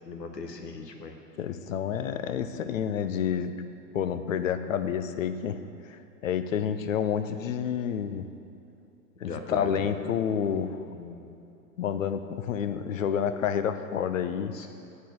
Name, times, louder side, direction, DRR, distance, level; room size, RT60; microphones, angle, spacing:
voice 1, 0.1-1.1 9.2-9.9 10.9-11.4 14.5-14.7, left 4 dB, 80° left, 5 dB, 1.1 m, -39 dB
voice 2, 1.4-3.5 3.9-5.6 5.9-8.3 9.2-10.8 11.8-14.5, left 8 dB, 55° left, 10 dB, 0.6 m, -29 dB
9.0 x 4.5 x 6.7 m, 2.8 s
figure-of-eight pair, 120°, 49 cm